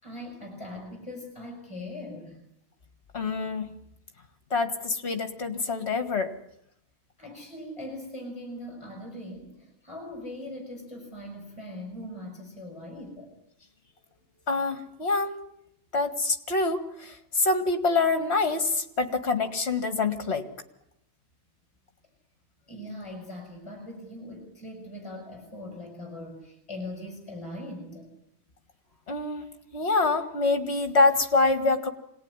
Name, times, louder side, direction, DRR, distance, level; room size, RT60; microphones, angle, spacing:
voice 1, 0.0-2.4 7.2-13.3 22.7-28.1, left 1 dB, 20° left, 2 dB, 6.1 m, -40 dB
voice 2, 3.1-3.8 4.5-6.4 14.5-15.4 15.9-20.5 29.1-31.9, left 3 dB, 50° left, 7 dB, 2.3 m, -26 dB
26.0 x 18.5 x 9.9 m, 0.78 s
omnidirectional pair, 1.5 m